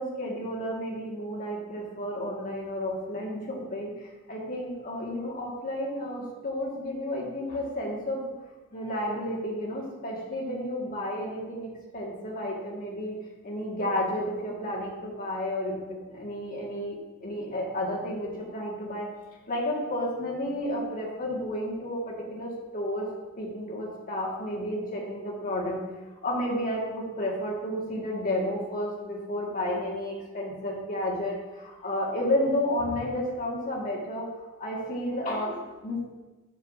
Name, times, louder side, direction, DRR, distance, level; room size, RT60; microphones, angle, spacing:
voice 1, 0.0-8.2 8.7-13.2 13.4-19.1 19.5-23.1 23.4-25.8 26.2-34.3 34.6-36.0, left 1 dB, 40° left, -4 dB, 1.8 m, -31 dB
9.3 x 6.7 x 2.7 m, 1.2 s
head